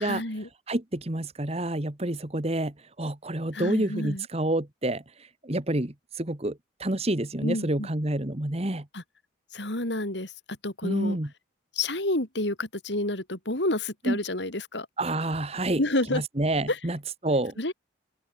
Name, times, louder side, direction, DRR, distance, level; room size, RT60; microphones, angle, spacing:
voice 1, 0.0-0.5 3.5-4.3 7.4-7.9 8.9-9.0 9.5-11.2 11.7-14.9 15.8-16.2 16.7-16.8 17.6-17.7, left 1 dB, 65° left, 4.1 m, -29 dB
voice 2, 0.7-8.8 10.8-11.3 14.0-14.2 15.0-15.8 16.1-17.7, right 1 dB, 35° right, 1.6 m, -28 dB
open air
head